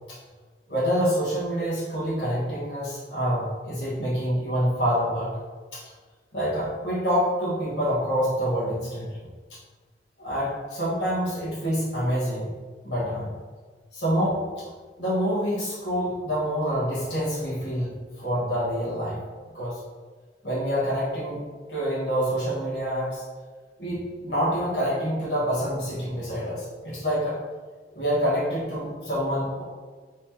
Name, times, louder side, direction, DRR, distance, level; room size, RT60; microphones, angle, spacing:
voice 1, 0.7-5.3 5.7-5.8 6.3-9.1 10.2-12.5 12.8-13.3 13.9-14.4 15.0-17.9 18.2-19.2 19.5-19.8 20.4-21.4 21.7-23.2 23.8-27.4 27.9-29.6, equal, 75° left, -8 dB, 1.1 m, -26 dB
2.9 x 2.9 x 3.6 m, 1.4 s
head